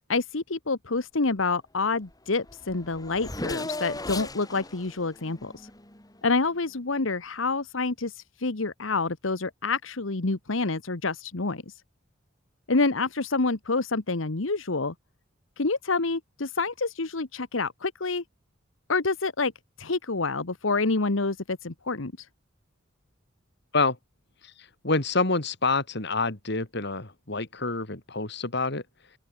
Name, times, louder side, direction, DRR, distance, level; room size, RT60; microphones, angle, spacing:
voice 1, 0.1-5.7 6.2-11.6 12.7-14.9 15.6-18.2 18.9-19.5 19.8-22.3, left 3 dB, 85° left, 1.4 m, -27 dB
Race car auto racing / Accelerating revving vroom, 2.1-2.2 2.4-6.4, left 2 dB, 20° left, 3.0 m, -37 dB
voice 2, 24.8-28.8, left 3 dB, 60° left, 3.2 m, -27 dB
open air
head